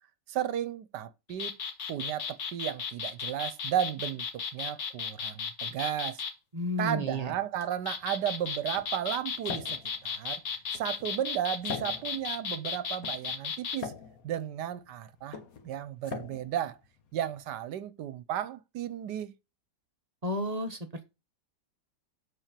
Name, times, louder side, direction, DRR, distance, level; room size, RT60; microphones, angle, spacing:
voice 1, 0.3-1.6 1.9-6.2 6.8-10.4 10.7-13.9 14.2-15.4 15.6-16.8 17.1-19.3, right 10 dB, 70° right, 1.3 m, -34 dB
sound 1, 1.3-6.3 7.6-13.8, left 6 dB, 70° left, 1.9 m, -35 dB
voice 2, 6.5-7.3 20.2-20.8, equal, 25° right, 0.9 m, -31 dB
sound 2, 7.8-17.6, left 6 dB, 55° left, 1.6 m, -44 dB
7.5 x 4.4 x 6.8 m
omnidirectional pair, 2.0 m